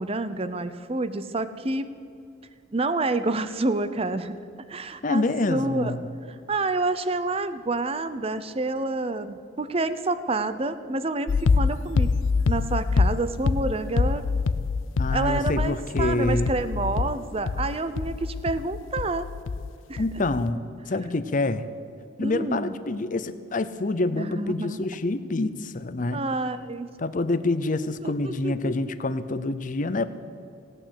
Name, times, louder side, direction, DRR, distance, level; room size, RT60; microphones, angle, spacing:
voice 1, 0.0-1.9 2.7-4.4 4.7-5.9 6.5-12.1 12.5-14.2 15.1-19.3 19.9-20.0 22.2-22.7 24.1-24.8 26.1-26.9 28.0-28.9, right 2 dB, 30° right, 12 dB, 0.6 m, -28 dB
voice 2, 5.0-6.1 15.0-16.5 20.0-20.6 20.9-21.7 22.2-26.2 27.0-30.1, left 2 dB, 40° left, 13 dB, 0.7 m, -27 dB
sound 1, 11.3-19.7 20.0-20.5, left 4 dB, 80° left, 0.5 m, -25 dB
17.0 x 8.9 x 8.3 m, 2.4 s
head